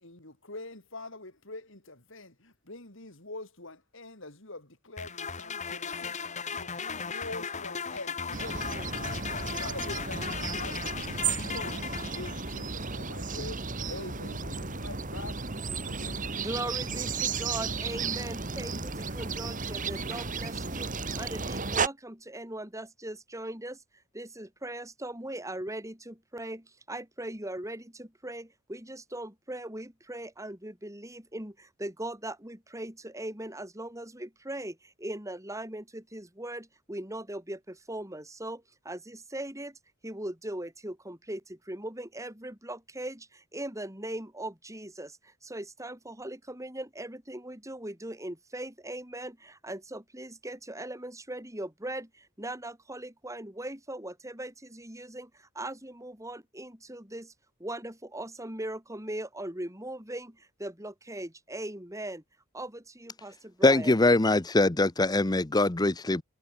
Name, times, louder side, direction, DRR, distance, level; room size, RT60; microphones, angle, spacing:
voice 1, 0.0-16.4, left 2 dB, 65° left, 6.0 m, -45 dB
sound 1, 5.0-12.7, left 6 dB, 35° left, 2.4 m, -37 dB
sound 2, 8.3-21.9, right 4 dB, 40° right, 2.3 m, -34 dB
voice 2, 16.3-20.9 21.1-23.8 24.1-39.8 40.0-57.3 57.6-62.2 62.5-64.0, right 1 dB, 15° right, 6.0 m, -39 dB
voice 3, 63.6-66.2, left 2 dB, 20° left, 0.7 m, -23 dB
head